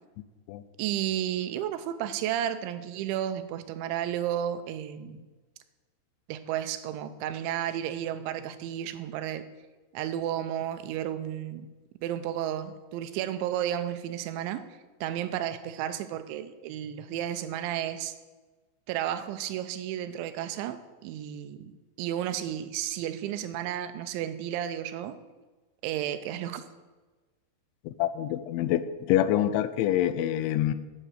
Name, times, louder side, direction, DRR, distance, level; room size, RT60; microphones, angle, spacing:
voice 1, 0.8-5.2 6.3-9.5 9.9-11.7 12.0-14.6 15.0-18.1 18.9-25.2 25.8-26.6, right 11 dB, 85° right, 11 dB, 3.0 m, -32 dB
voice 2, 27.9-30.7, left 12 dB, 85° left, 13 dB, 3.0 m, -26 dB
9.0 x 8.1 x 7.3 m, 1.2 s
omnidirectional pair, 5.3 m